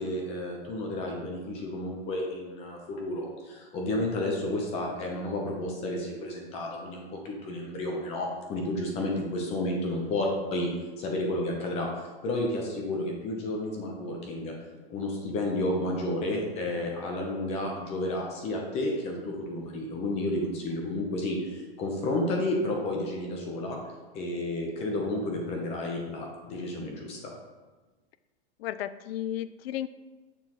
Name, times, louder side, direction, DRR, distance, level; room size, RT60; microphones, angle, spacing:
voice 1, 0.0-10.7 11.0-11.9 12.2-14.5 14.9-23.8 24.1-27.4, left 1 dB, 20° left, 0 dB, 0.7 m, -31 dB
voice 2, 28.6-29.9, left 12 dB, 80° left, 14 dB, 0.5 m, -34 dB
6.8 x 5.7 x 3.0 m, 1.2 s
supercardioid pair, 165°, 30 cm